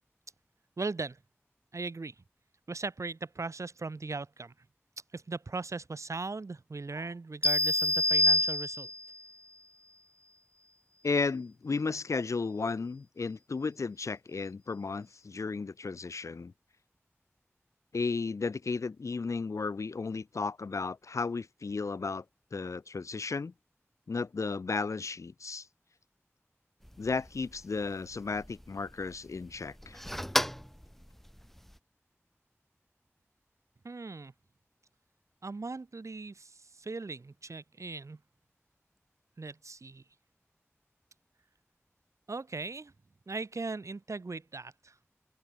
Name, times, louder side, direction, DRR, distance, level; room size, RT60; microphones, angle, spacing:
voice 1, 0.8-1.2 1.7-2.1 2.7-4.5 5.1-8.9 33.8-34.3 35.4-38.2 39.4-40.0 42.3-42.9 43.3-44.9, right 3 dB, 85° right, 1.0 m, -39 dB
sound 1, 7.4-9.2, left 1 dB, 25° left, 0.4 m, -26 dB
voice 2, 11.0-16.5 17.9-22.2 22.5-23.5 24.1-25.7 27.0-30.0, left 4 dB, 90° left, 0.4 m, -34 dB
sound 2, 26.8-31.8, equal, 5° left, 1.6 m, -38 dB
open air
wide cardioid pair, 50°, 5 cm